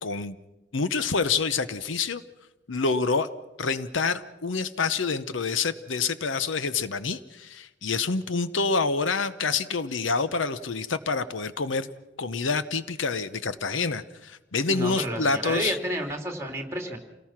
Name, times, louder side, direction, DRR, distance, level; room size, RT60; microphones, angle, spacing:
voice 1, 0.0-0.4 0.7-2.2 2.7-3.3 3.6-11.9 12.2-15.8, left 4 dB, 80° left, 13 dB, 0.9 m, -27 dB
voice 2, 14.7-17.0, right 1 dB, 15° right, 2 dB, 2.9 m, -31 dB
28.0 x 19.0 x 5.9 m, 1.1 s
head